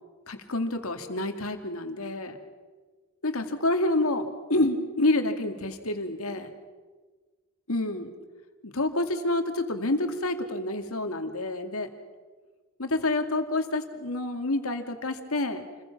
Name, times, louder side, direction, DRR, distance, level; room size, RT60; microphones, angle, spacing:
voice 1, 0.3-2.4 3.2-4.2 4.5-6.5 7.7-8.1 8.6-11.9 12.8-15.6, left 2 dB, 80° left, 6 dB, 2.3 m, -28 dB
28.5 x 21.5 x 6.0 m, 1.4 s
head